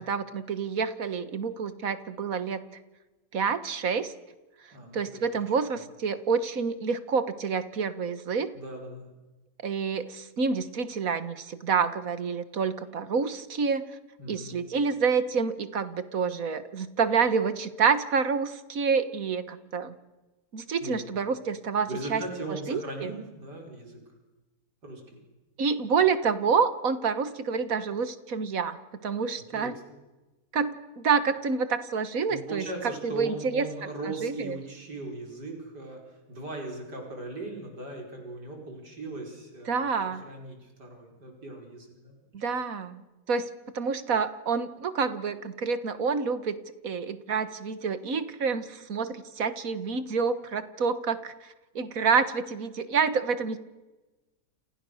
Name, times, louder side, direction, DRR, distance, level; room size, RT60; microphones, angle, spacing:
voice 1, 0.0-2.6 3.3-4.1 4.9-8.5 9.6-14.0 14.3-20.0 20.5-22.2 22.7-23.1 25.6-28.8 29.0-29.8 30.5-32.7 33.0-33.7 34.1-34.6 39.7-40.2 42.3-43.0 43.3-46.6 46.8-51.5 51.8-53.6, right 5 dB, 55° right, 12 dB, 1.8 m, -28 dB
voice 2, 4.7-5.4 5.7-5.8 8.6-9.1 14.2-14.6 20.8-21.1 21.9-24.0 24.8-25.0 29.5-29.8 32.3-39.9 40.3-42.1, right 2 dB, 85° right, 1 dB, 5.4 m, -39 dB
29.0 x 29.0 x 6.5 m, 1.1 s
omnidirectional pair, 1.7 m